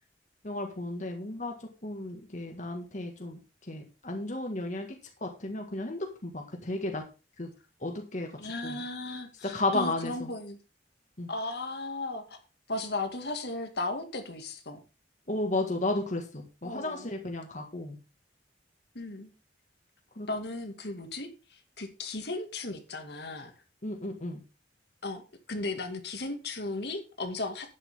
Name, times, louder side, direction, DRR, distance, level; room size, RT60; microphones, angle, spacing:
voice 1, 0.4-1.6 1.8-3.4 3.7-4.9 5.2-7.0 7.4-7.5 7.8-8.3 8.6-8.8 9.4-10.3 11.2-11.3 15.3-18.0 20.2-20.3 23.8-24.4, left 2 dB, 45° left, 3 dB, 1.9 m, -33 dB
voice 2, 8.4-10.6 11.3-12.4 12.7-14.8 16.6-17.1 18.9-19.3 20.3-23.5 25.0-25.2 25.5-27.7, left 2 dB, 65° left, 5 dB, 2.2 m, -36 dB
11.5 x 9.8 x 3.7 m, 0.30 s
head